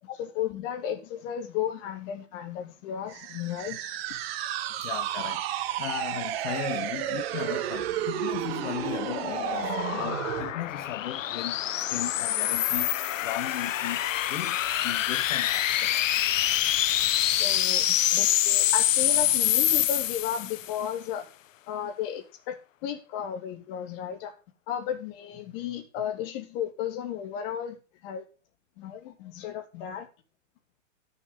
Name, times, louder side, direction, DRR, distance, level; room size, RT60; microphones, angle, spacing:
voice 1, 0.2-4.0 17.3-21.3 21.7-24.3 24.7-27.8 28.0-28.2 28.8-30.1, left 9 dB, 45° left, 3.2 m, -34 dB
sound 1, 3.1-10.5, right 12 dB, 50° right, 1.8 m, -32 dB
voice 2, 4.6-16.1 16.4-16.6, left 11 dB, 70° left, 1.3 m, -37 dB
sound 2, 8.1-20.8, left 12 dB, 90° left, 0.8 m, -26 dB
13.0 x 7.2 x 5.1 m
hypercardioid pair, 140°, 38 cm